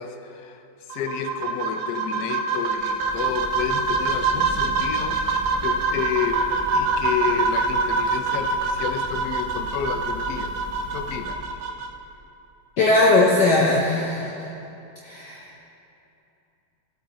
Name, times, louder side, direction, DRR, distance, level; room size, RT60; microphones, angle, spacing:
voice 1, 0.0-6.5 6.7-10.5 10.9-11.4, left 8 dB, 80° left, 7 dB, 0.9 m, -30 dB
sound 1, 0.9-11.9, right 3 dB, 85° right, 1.7 m, -25 dB
sound 2, 2.6-11.8, right 1 dB, 45° right, 1.9 m, -38 dB
voice 2, 12.8-14.5 15.0-15.6, left 2 dB, 60° left, -2 dB, 1.3 m, -19 dB
17.0 x 8.7 x 3.0 m, 2.9 s
omnidirectional pair, 2.3 m